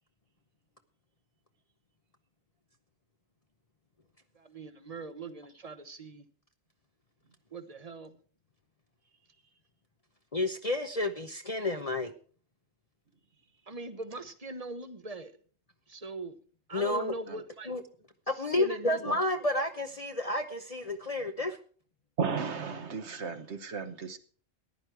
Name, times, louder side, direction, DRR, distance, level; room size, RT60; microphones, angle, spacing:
voice 1, 4.3-6.3 7.5-8.1 13.7-15.4 15.9-16.4 16.7-17.8 18.3-19.1, right 2 dB, 30° right, 1.1 m, -41 dB
voice 2, 10.3-12.1 16.7-17.1 17.7-17.8 18.3-21.6, left 2 dB, 35° left, 0.8 m, -30 dB
voice 3, 22.2-24.2, right 5 dB, 60° right, 1.4 m, -34 dB
14.5 x 10.5 x 4.7 m
omnidirectional pair, 1.3 m